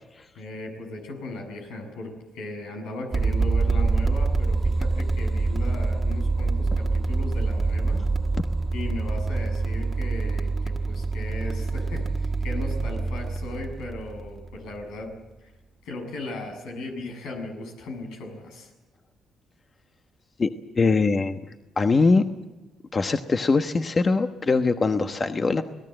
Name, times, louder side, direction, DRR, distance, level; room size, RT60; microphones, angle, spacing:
voice 1, 0.4-8.1 8.7-15.1 15.4-15.5 15.9-18.7, left 2 dB, 90° left, 3 dB, 7.1 m, -37 dB
sound 1, 3.1-14.8, right 3 dB, 35° right, 1.5 m, -25 dB
voice 2, 20.4-21.4 21.8-22.2 22.9-25.6, left 4 dB, 35° left, 7 dB, 1.2 m, -22 dB
27.5 x 18.5 x 7.8 m, 1.1 s
cardioid pair, 90°, 0 cm